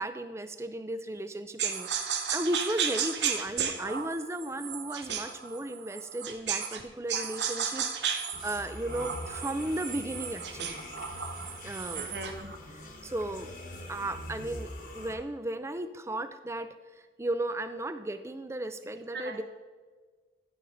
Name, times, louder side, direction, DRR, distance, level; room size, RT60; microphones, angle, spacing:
voice 1, 0.0-10.8 11.6-12.1 13.0-13.5 13.9-16.8 17.2-19.4, right 1 dB, 15° right, 11 dB, 0.4 m, -35 dB
sound 1, 1.6-6.8 7.1-12.4, right 7 dB, 85° right, 0.8 m, -34 dB
sound 2, 8.3-15.1, left 1 dB, 50° left, 1.2 m, -44 dB
voice 2, 11.9-12.6 19.1-19.4, right 3 dB, 65° right, 5 dB, 1.0 m, -40 dB
12.5 x 5.7 x 3.9 m, 1.4 s
head